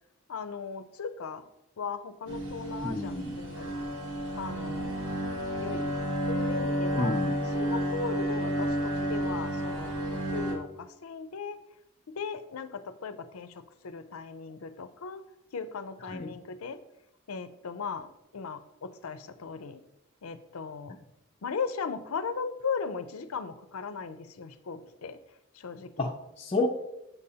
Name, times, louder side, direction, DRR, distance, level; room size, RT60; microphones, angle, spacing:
voice 1, 0.3-1.4 1.8-3.9 4.4-5.0 5.6-5.9 6.2-7.1 7.5-10.0 10.3-11.6 12.2-15.2 15.5-16.8 17.3-19.8 20.2-21.0 21.4-25.2 25.5-26.1, left 5 dB, 90° left, 11 dB, 0.5 m, -37 dB
sound 1, 2.3-10.5, right 1 dB, 85° right, 1.7 m, -31 dB
voice 2, 2.8-3.4 7.0-7.4 16.1-16.3 26.0-26.7, left 2 dB, 25° left, -1 dB, 0.4 m, -30 dB
7.0 x 6.7 x 2.8 m, 0.88 s
head